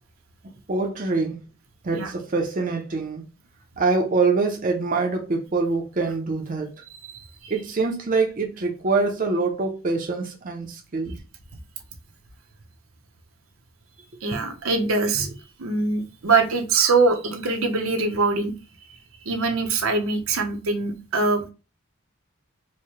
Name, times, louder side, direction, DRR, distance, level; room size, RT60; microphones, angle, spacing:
voice 1, 0.4-1.4 1.8-3.3 3.8-6.8 7.5-11.2, right 3 dB, 40° right, 0.6 m, -25 dB
voice 2, 7.0-7.5 14.2-15.3 15.6-18.5 18.9-19.0 19.2-21.4, right 3 dB, 85° right, 0.8 m, -23 dB
4.6 x 2.2 x 2.9 m
head